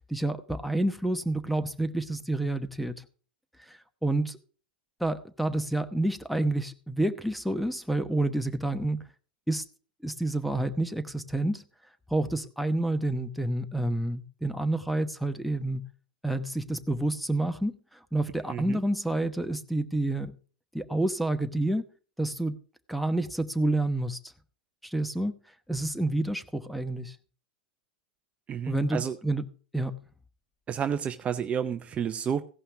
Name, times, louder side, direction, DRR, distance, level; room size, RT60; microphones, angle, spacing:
voice 1, 0.1-3.0 3.6-4.4 5.0-9.0 9.5-9.6 10.0-11.6 12.1-15.9 16.2-17.8 18.1-20.3 20.7-21.9 22.2-22.6 22.9-24.2 24.8-25.4 25.7-27.2 28.7-29.5 29.7-30.0, right 1 dB, ahead, 11 dB, 1.0 m, -29 dB
voice 2, 18.5-18.8 28.5-29.2 30.7-32.4, right 8 dB, 25° right, 11 dB, 0.6 m, -30 dB
16.0 x 5.6 x 5.8 m, 0.39 s
hypercardioid pair, 105°, 5 cm